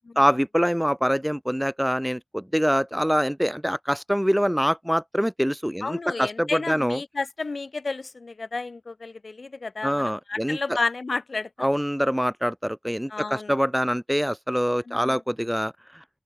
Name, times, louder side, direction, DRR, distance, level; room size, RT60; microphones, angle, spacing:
voice 1, 0.2-7.0 9.8-10.8 11.6-15.7, equal, 5° right, 2.1 m, -24 dB
voice 2, 5.8-11.7 13.1-13.5 14.9-15.2, left 3 dB, 70° left, 4.6 m, -31 dB
open air
wide cardioid pair, 70°, 0 cm